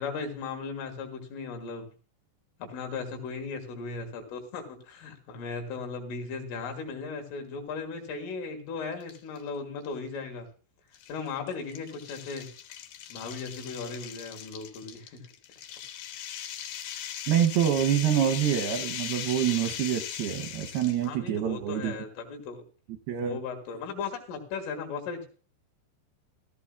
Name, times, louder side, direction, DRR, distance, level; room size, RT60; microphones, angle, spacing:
voice 1, 0.0-1.9 2.6-10.5 11.1-12.5 13.1-15.2 21.0-22.6 23.2-25.3, left 4 dB, 90° left, 3 dB, 4.3 m, -37 dB
sound 1, 9.0-9.4 9.8-9.9 10.9-21.1, left 10 dB, 70° left, 2.2 m, -39 dB
voice 2, 17.3-21.9 23.1-23.4, right 10 dB, 85° right, 5 dB, 2.2 m, -26 dB
16.0 x 14.0 x 2.3 m, 0.39 s
omnidirectional pair, 5.6 m